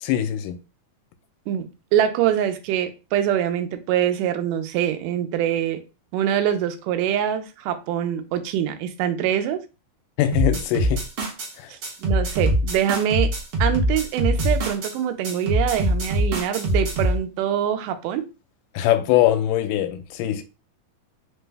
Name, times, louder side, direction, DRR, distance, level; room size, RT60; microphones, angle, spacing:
voice 1, 0.0-0.6 10.2-11.0 11.6-11.7 18.8-20.4, left 12 dB, 85° left, 2.2 m, -22 dB
voice 2, 1.9-5.8 6.1-9.6 11.7-13.3 13.6-18.2, right 10 dB, 85° right, 2.1 m, -24 dB
sound 1, 10.3-11.5 11.8-14.9 15.2-17.2, equal, 60° right, 1.5 m, -23 dB
5.0 x 2.1 x 3.3 m
omnidirectional pair, 3.7 m